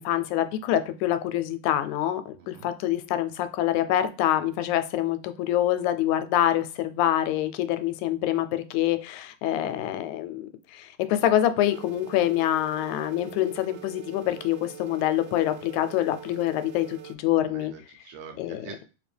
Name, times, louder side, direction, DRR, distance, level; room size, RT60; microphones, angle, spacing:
voice 1, 0.0-17.7 18.4-18.6, left 12 dB, 90° left, 10 dB, 2.0 m, -26 dB
voice 2, 2.3-2.7 17.5-18.8, right 6 dB, 75° right, 4 dB, 1.6 m, -44 dB
sound 1, 11.6-17.2, right 10 dB, 90° right, 2.0 m, -44 dB
3.9 x 3.4 x 3.3 m, 0.33 s
omnidirectional pair, 3.3 m